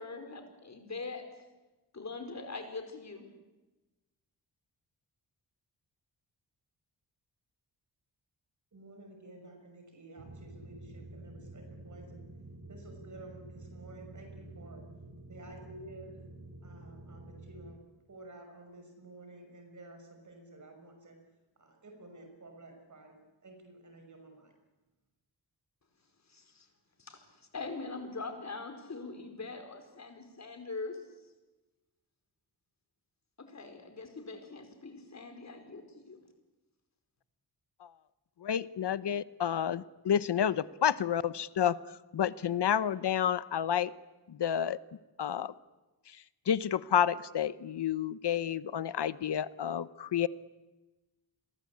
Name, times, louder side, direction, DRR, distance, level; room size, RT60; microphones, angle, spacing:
voice 1, 0.0-1.4 1.9-3.3 26.3-26.7 27.0-27.2 27.5-31.0 33.4-36.2, left 3 dB, 40° left, 6 dB, 4.9 m, -42 dB
voice 2, 8.7-12.2 12.7-14.8 15.3-16.2 16.6-17.8 18.1-21.2 21.6-24.5, right 2 dB, 45° right, 4 dB, 6.1 m, -52 dB
sound 1, 10.2-17.7, right 2 dB, 70° right, 5.9 m, -49 dB
voice 3, 38.4-41.8 42.1-43.9 44.3-44.8 45.2-45.5 46.5-50.3, left 9 dB, 75° left, 16 dB, 1.1 m, -30 dB
29.5 x 22.5 x 8.6 m, 1.1 s
wide cardioid pair, 130°, 41 cm